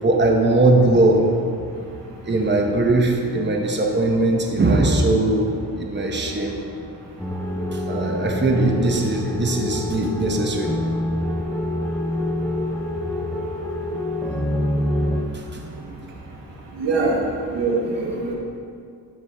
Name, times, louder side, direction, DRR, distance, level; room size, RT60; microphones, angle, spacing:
voice 1, 0.0-1.3 2.2-6.6 7.7-10.7 11.4-11.5 13.9-14.0 15.3-15.9, right 2 dB, 25° right, 1 dB, 1.0 m, -20 dB
sound 1, 7.2-15.2, left 1 dB, 5° left, 0.8 m, -26 dB
voice 2, 16.8-17.2 17.5-18.3, right 3 dB, 85° right, -3 dB, 1.4 m, -22 dB
13.0 x 4.8 x 3.5 m, 2.3 s
cardioid pair, 70°, 42 cm